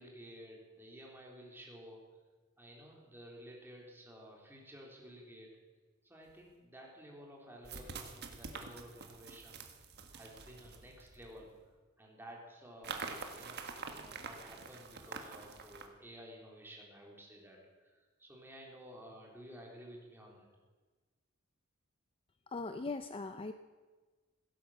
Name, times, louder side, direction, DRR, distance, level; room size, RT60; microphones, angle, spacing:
voice 1, 0.0-2.0 2.6-5.5 6.0-9.6 10.1-11.5 12.0-20.5, equal, 10° right, -2 dB, 3.4 m, -53 dB
sound 1, 6.3-6.4 7.6-11.5 12.8-15.9, right 4 dB, 50° right, 1.6 m, -46 dB
voice 2, 22.5-23.5, left 3 dB, 25° left, 9 dB, 0.5 m, -40 dB
16.5 x 10.5 x 7.5 m, 1.3 s
head